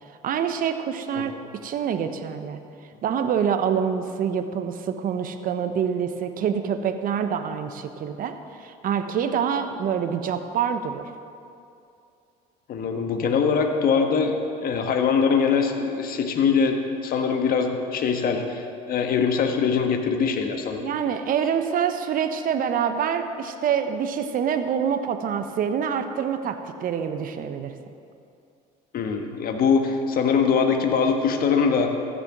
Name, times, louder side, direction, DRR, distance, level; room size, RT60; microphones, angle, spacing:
voice 1, 0.2-1.3 1.6-2.6 3.0-8.4 8.6-11.1 20.8-27.7, right 7 dB, 50° right, 8 dB, 1.0 m, -26 dB
voice 2, 12.7-16.8 17.0-20.9 28.9-31.9, left 6 dB, 55° left, 4 dB, 1.5 m, -22 dB
15.0 x 7.0 x 6.0 m, 2.5 s
supercardioid pair, 80°, 18 cm